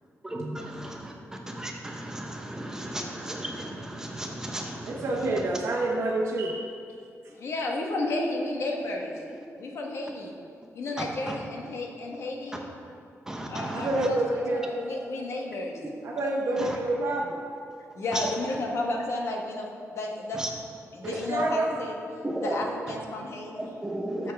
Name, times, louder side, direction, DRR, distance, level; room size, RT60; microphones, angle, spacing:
voice 1, 0.2-1.1 1.5-4.9 11.3-11.4 13.3-13.9 16.7-16.8 18.1-18.3 20.4-20.5 22.2-22.6 23.6-24.3, right 1 dB, 10° right, 0 dB, 0.9 m, -34 dB
voice 2, 4.8-6.7 13.7-14.7 16.0-17.4 21.0-21.7, right 2 dB, 60° right, -3 dB, 1.0 m, -28 dB
voice 3, 7.3-9.2 9.5-10.3 10.7-12.6 13.5-14.2 14.5-15.8 17.9-20.4 20.9-21.9 22.4-23.7 24.2-24.3, left 2 dB, 60° left, 0 dB, 1.2 m, -32 dB
13.5 x 6.5 x 3.4 m, 2.4 s
wide cardioid pair, 175°, 5 cm